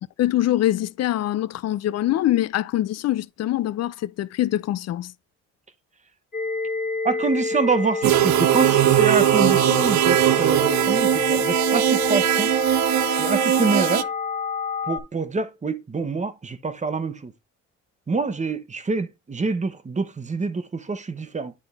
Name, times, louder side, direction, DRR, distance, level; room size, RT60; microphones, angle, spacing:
voice 1, 0.2-5.1, left 13 dB, 60° left, 0.5 m, -24 dB
sound 1, 6.3-15.0, left 4 dB, 30° left, 2.0 m, -28 dB
voice 2, 7.0-12.5 13.2-14.1 14.9-17.3 18.1-21.5, right 3 dB, 25° right, 1.1 m, -26 dB
sound 2, 8.0-14.0, right 13 dB, 70° right, 0.5 m, -20 dB
9.9 x 3.8 x 3.5 m
cardioid pair, 90°, 30 cm